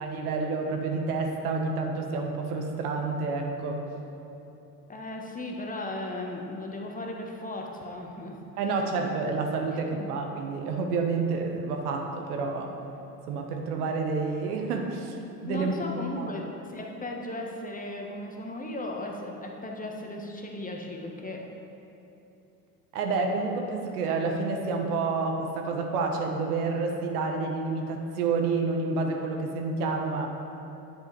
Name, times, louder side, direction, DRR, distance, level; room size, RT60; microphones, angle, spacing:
voice 1, 0.0-3.8 8.6-12.7 13.3-15.2 15.4-15.7 16.2-16.3 22.9-30.3, right 4 dB, 65° right, 2 dB, 1.2 m, -29 dB
voice 2, 4.9-8.4 9.7-10.1 15.4-21.4, left 2 dB, 15° left, 0 dB, 1.3 m, -36 dB
9.7 x 8.0 x 4.8 m, 3.0 s
figure-of-eight pair, 65°, 48 cm